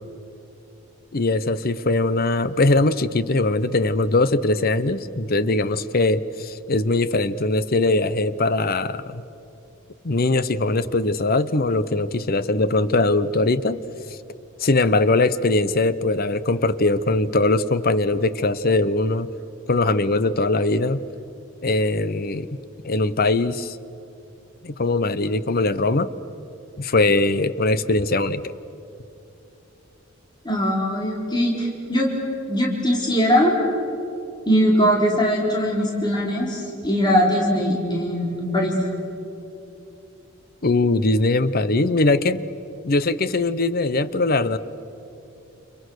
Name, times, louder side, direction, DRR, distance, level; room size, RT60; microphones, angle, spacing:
voice 1, 1.1-9.2 10.0-13.8 14.6-19.3 19.7-21.0 21.6-22.5 22.8-23.8 24.6-26.1 26.8-28.5 40.6-42.4 42.8-44.6, left 2 dB, 45° left, 14 dB, 0.8 m, -21 dB
voice 2, 30.4-32.1 32.5-33.5 34.5-38.8, equal, 20° left, -3 dB, 4.2 m, -21 dB
29.5 x 29.0 x 6.5 m, 2.9 s
head